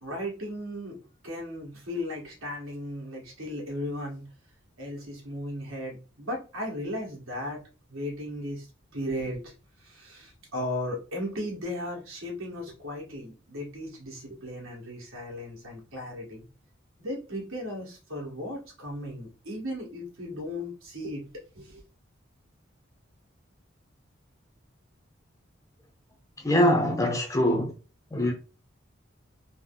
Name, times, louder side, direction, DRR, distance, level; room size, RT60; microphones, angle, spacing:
voice 1, 0.0-1.0 1.2-4.2 4.8-7.6 7.9-8.7 8.9-9.5 9.8-16.4 17.0-21.2 21.6-21.8, left 1 dB, 90° right, 1.6 m, -36 dB
voice 2, 26.4-27.7 28.1-28.3, left 1 dB, 15° left, 0.4 m, -23 dB
3.4 x 2.0 x 3.7 m
head